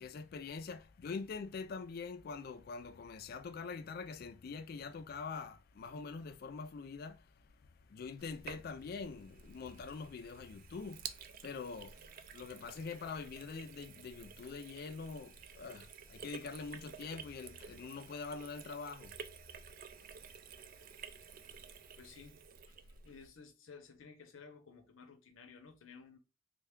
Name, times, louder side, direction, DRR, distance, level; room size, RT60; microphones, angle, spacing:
voice 1, 0.0-7.4 7.9-19.2, left 4 dB, 50° left, 0.3 m, -44 dB
Sink (filling or washing), 8.2-23.3, right 7 dB, 45° right, 0.3 m, -52 dB
voice 2, 22.0-22.4 22.7-26.2, left 5 dB, 80° left, 0.6 m, -55 dB
3.4 x 2.2 x 3.5 m
head